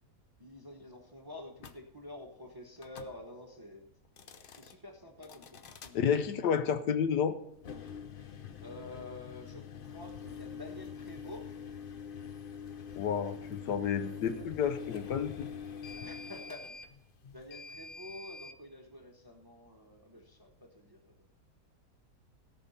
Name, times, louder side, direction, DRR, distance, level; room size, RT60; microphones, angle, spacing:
voice 1, 0.4-3.9 4.6-6.0 8.6-9.7 9.9-11.5 13.9-15.1 16.0-16.8 17.3-21.3, left 1 dB, 15° right, 2 dB, 0.8 m, -49 dB
sound 1, 1.6-1.8 2.8-3.1 4.0-4.7 5.2-5.9 7.5-18.6, left 6 dB, 55° left, 0.6 m, -45 dB
voice 2, 5.9-7.4 12.9-15.5, left 7 dB, 75° left, 10 dB, 1.3 m, -30 dB
17.0 x 5.7 x 5.5 m, 0.77 s
omnidirectional pair, 1.8 m